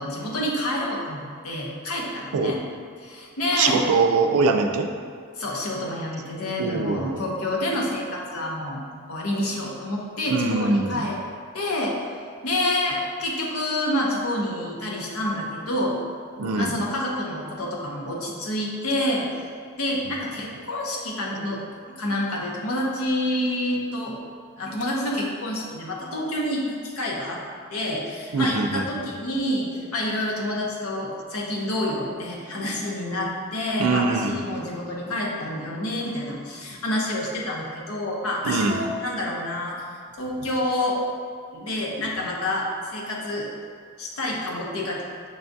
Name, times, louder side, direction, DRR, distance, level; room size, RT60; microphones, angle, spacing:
voice 1, 0.0-2.6 3.0-3.8 5.4-8.8 9.1-11.2 11.5-11.9 12.4-16.0 16.5-19.3 19.8-21.6 22.0-24.2 24.6-27.4 27.7-39.8 40.2-41.0 41.5-43.5 44.0-45.0, left 1 dB, 85° left, -2 dB, 0.7 m, -28 dB
voice 2, 3.5-4.9 6.6-7.2 10.3-11.1 16.4-16.7 28.3-29.1 33.8-34.4 38.4-38.8, right 4 dB, 85° right, 5 dB, 0.4 m, -23 dB
6.2 x 2.3 x 2.6 m, 2.1 s
head